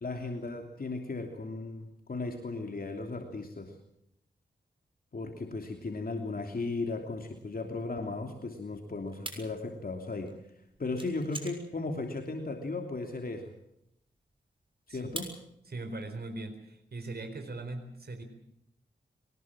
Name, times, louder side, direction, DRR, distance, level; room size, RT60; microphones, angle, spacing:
voice 1, 0.0-3.7 5.1-10.3 10.8-13.5 14.9-15.3, left 3 dB, 55° left, 3 dB, 3.1 m, -36 dB
sound 1, 7.5-16.0, right 2 dB, 30° right, 6.8 m, -46 dB
voice 2, 15.7-18.2, right 2 dB, 60° right, 6 dB, 4.3 m, -40 dB
23.5 x 20.0 x 7.5 m, 0.77 s
cardioid pair, 55°, 18 cm